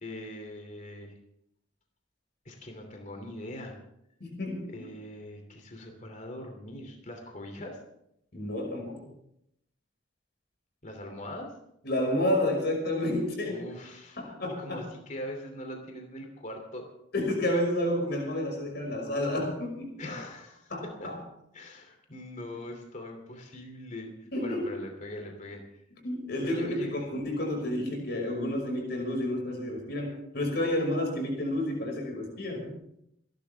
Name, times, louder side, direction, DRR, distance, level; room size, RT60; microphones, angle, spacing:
voice 1, 0.0-1.1 2.4-3.8 4.7-7.8 10.8-11.5 13.5-14.2 14.6-16.9 20.0-21.1 21.5-24.1 24.4-25.8 26.4-27.0, left 1 dB, 40° left, 4 dB, 2.8 m, -41 dB
voice 2, 4.2-4.7 8.3-9.0 11.8-13.6 14.2-14.8 17.1-19.9 20.7-21.1 24.3-24.7 26.0-32.7, left 1 dB, 60° left, 1 dB, 5.6 m, -30 dB
28.0 x 12.0 x 3.5 m, 0.77 s
head